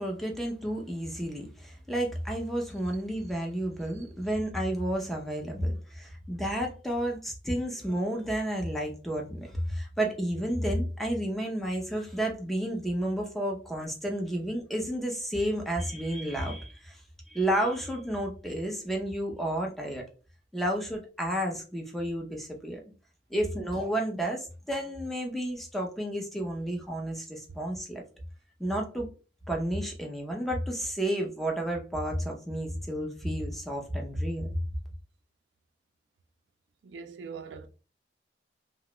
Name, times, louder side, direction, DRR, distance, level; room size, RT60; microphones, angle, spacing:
voice 1, 0.0-17.0 17.3-20.0 20.5-22.8 23.3-28.0 28.6-29.1 29.5-34.5, right 1 dB, ahead, 0.6 m, -31 dB
voice 2, 36.8-37.7, right 5 dB, 80° right, 0.4 m, -42 dB
2.9 x 2.2 x 3.0 m
head